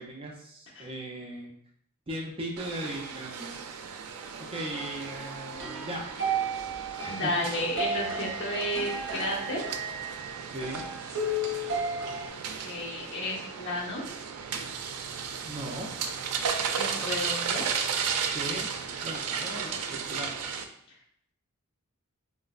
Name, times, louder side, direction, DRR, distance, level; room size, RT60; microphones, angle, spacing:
voice 1, 0.0-1.5 2.1-3.6 4.4-6.1 7.0-7.3 10.5-10.9 15.5-15.9 18.3-18.7 19.0-20.4, right 1 dB, 25° right, -1 dB, 0.4 m, -38 dB
sound 1, 2.6-20.6, right 6 dB, 90° right, 0.3 m, -35 dB
sound 2, 4.7-12.3, right 2 dB, 55° right, 0.7 m, -34 dB
voice 2, 7.1-9.6 12.3-14.0 16.8-17.7, left 1 dB, 55° left, -3 dB, 0.8 m, -32 dB
4.1 x 2.1 x 2.3 m, 0.67 s
head